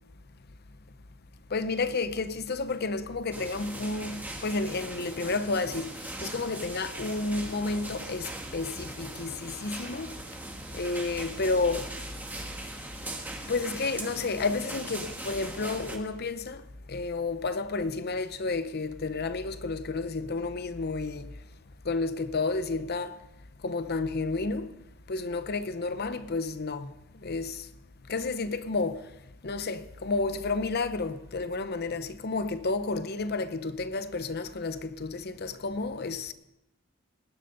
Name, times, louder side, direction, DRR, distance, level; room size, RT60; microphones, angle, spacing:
voice 1, 1.5-10.2 10.7-11.9 13.4-21.3 21.8-23.2 23.6-24.8 25.1-27.7 28.1-29.1 29.4-36.3, left 3 dB, 50° left, 0.8 m, -31 dB
sound 1, 3.3-16.0, right 1 dB, 10° right, 1.4 m, -40 dB
19.0 x 10.5 x 4.0 m
head